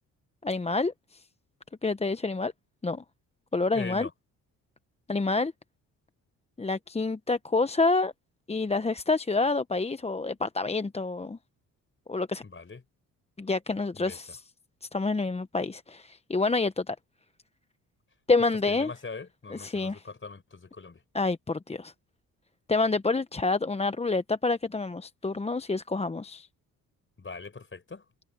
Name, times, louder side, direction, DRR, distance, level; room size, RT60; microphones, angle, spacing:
voice 1, 0.4-1.2 1.8-2.5 2.8-3.0 3.5-4.1 5.1-5.5 6.6-8.1 8.5-11.4 12.1-12.4 13.4-14.4 14.9-17.0 18.3-18.9 19.5-20.1 21.1-21.9 22.7-26.5, left 3 dB, 15° left, 0.8 m, -28 dB
voice 2, 3.7-4.1 12.4-12.8 13.9-14.2 18.7-21.0 27.2-28.0, left 4 dB, 35° left, 4.9 m, -41 dB
supercardioid pair, 60°, 36 cm